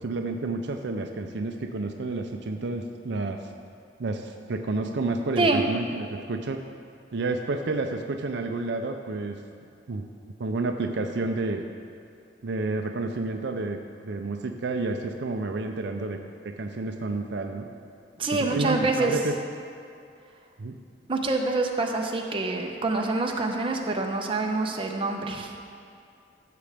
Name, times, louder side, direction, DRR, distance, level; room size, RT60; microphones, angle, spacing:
voice 1, 0.0-3.5 4.0-6.6 7.1-9.4 9.9-10.0 10.4-11.6 12.4-13.8 14.0-16.2 16.4-17.7 18.5-19.3 20.6-20.7, right 3 dB, 70° right, 5 dB, 0.5 m, -30 dB
voice 2, 18.2-19.2 21.1-25.5, right 3 dB, 30° right, 2 dB, 0.8 m, -26 dB
15.0 x 6.8 x 3.5 m, 2.4 s
head